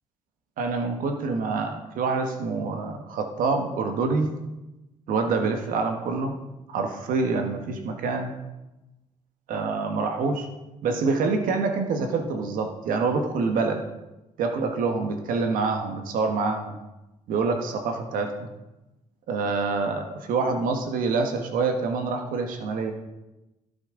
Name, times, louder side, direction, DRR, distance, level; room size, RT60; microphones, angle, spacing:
voice 1, 0.6-4.3 5.1-6.3 6.7-8.3 9.5-10.5 10.8-13.8 14.4-16.8 17.3-18.5 19.3-22.9, right 4 dB, 90° right, 5 dB, 1.4 m, -26 dB
15.5 x 9.6 x 3.8 m, 1.0 s
cardioid pair, 120°, 14 cm